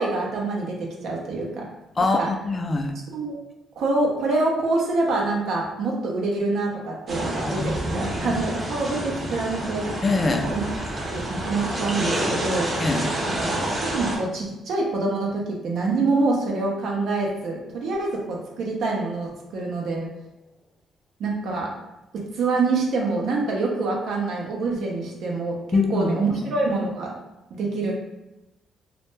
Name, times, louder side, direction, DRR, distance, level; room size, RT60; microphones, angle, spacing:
voice 1, 0.0-1.6 2.0-2.3 3.1-3.4 3.8-9.9 10.3-10.6 11.1-12.7 13.8-20.1 21.2-21.8 22.1-27.2 27.5-27.9, right 3 dB, 75° right, -1 dB, 0.4 m, -26 dB
voice 2, 2.0-2.9 7.5-8.4 10.0-10.5 12.8-13.1 25.7-26.1, left 3 dB, 30° left, 5 dB, 0.3 m, -24 dB
sound 1, 7.1-14.2, right 1 dB, 40° right, 0.7 m, -28 dB
2.1 x 2.1 x 3.0 m, 0.96 s
cardioid pair, 90°, 0 cm